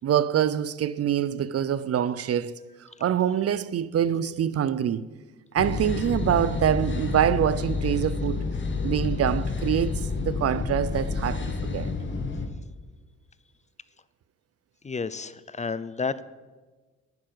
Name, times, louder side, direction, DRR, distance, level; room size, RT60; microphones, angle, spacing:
voice 1, 0.0-2.6 3.0-5.0 5.5-8.4 8.8-11.9, right 9 dB, 50° right, 0.7 m, -25 dB
sound 1, 5.6-12.5, left 4 dB, 40° left, 1.7 m, -29 dB
voice 2, 14.8-16.2, left 5 dB, 25° left, 0.5 m, -31 dB
11.0 x 9.6 x 7.9 m
cardioid pair, 90°, 30 cm